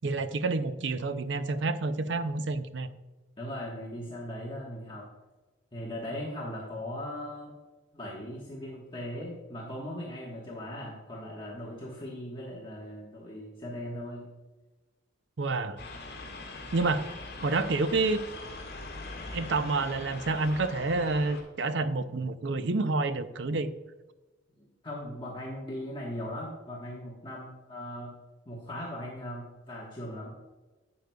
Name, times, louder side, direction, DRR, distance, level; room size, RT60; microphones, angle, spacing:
voice 1, 0.0-2.9 15.4-15.8 16.7-17.1 17.4-18.2 19.3-23.7, right 3 dB, 65° right, 11 dB, 0.5 m, -28 dB
voice 2, 3.4-5.1 5.7-7.5 7.9-14.2 24.6-28.1 28.5-30.3, left 1 dB, 25° left, -5 dB, 1.3 m, -39 dB
sound 1, 15.8-21.4, left 2 dB, 55° left, 2.0 m, -42 dB
11.5 x 7.8 x 2.3 m, 1.1 s
head